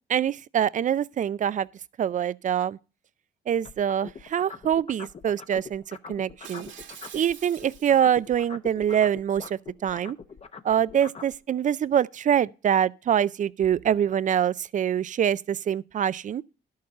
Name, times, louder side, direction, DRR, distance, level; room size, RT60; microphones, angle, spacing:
voice 1, 0.1-1.7 2.0-2.8 3.5-6.7 7.1-10.2 10.6-16.4, right 9 dB, 40° right, 0.4 m, -25 dB
sound 1, 3.6-7.3 7.6-11.3, left 5 dB, 30° left, 0.8 m, -42 dB
Shatter, 6.4-8.3 8.7-9.0, right 8 dB, 70° right, 1.7 m, -45 dB
11.5 x 6.6 x 4.2 m
cardioid pair, 90°, 20 cm